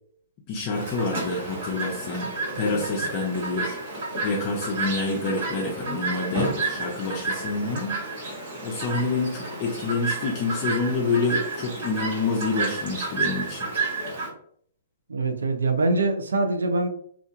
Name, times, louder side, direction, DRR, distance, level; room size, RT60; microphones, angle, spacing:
voice 1, 0.5-2.3 2.5-3.8 4.2-8.0 8.3-13.7, left 3 dB, 40° left, -1 dB, 0.5 m, -27 dB
Chirp tweet, 0.7-14.3, right 3 dB, 55° right, 1.3 m, -31 dB
voice 2, 15.1-16.9, right 2 dB, 85° right, 6 dB, 0.5 m, -23 dB
2.7 x 2.4 x 2.3 m, 0.62 s
hypercardioid pair, 135°, 0 cm